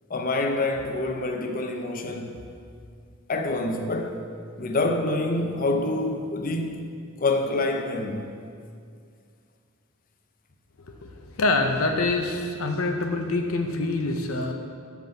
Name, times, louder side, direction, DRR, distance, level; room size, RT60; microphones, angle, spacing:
voice 1, 0.1-2.4 3.3-4.2 4.6-6.8 7.2-8.3, left 2 dB, 40° left, 4 dB, 0.7 m, -26 dB
voice 2, 10.9-14.5, left 2 dB, 80° left, 4 dB, 0.7 m, -26 dB
6.0 x 5.7 x 6.5 m, 2.2 s
head